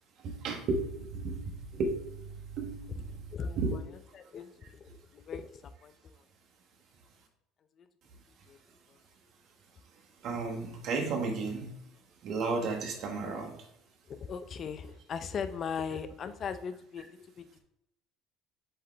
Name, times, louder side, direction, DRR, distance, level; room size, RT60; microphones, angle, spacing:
voice 1, 0.2-1.4 1.7-2.0 2.6-3.1 3.6-3.7 10.2-11.7 12.2-13.5, right 3 dB, 60° right, 3 dB, 1.5 m, -33 dB
voice 2, 4.1-6.1 7.8-7.9 8.5-8.6 14.1-17.6, left 6 dB, 45° left, 11 dB, 0.5 m, -39 dB
7.9 x 3.8 x 3.4 m, 0.76 s
hypercardioid pair, 75°, 0 cm